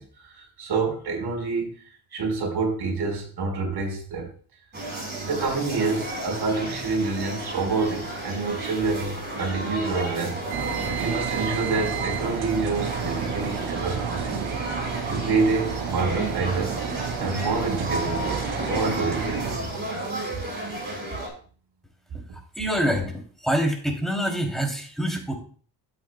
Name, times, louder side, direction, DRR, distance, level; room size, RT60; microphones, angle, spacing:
voice 1, 0.0-1.7 2.1-4.3 5.2-14.5 15.1-16.8 17.2-19.7, right 4 dB, 55° right, 1 dB, 4.7 m, -27 dB
sound 1, 4.7-21.3, right 1 dB, 20° right, 4.9 m, -33 dB
sound 2, 10.5-19.6, right 7 dB, 75° right, 1.6 m, -31 dB
voice 2, 22.6-23.1 23.4-25.4, equal, ahead, 1 dB, 2.9 m, -25 dB
12.0 x 8.8 x 2.3 m, 0.43 s
cardioid pair, 95°, 48 cm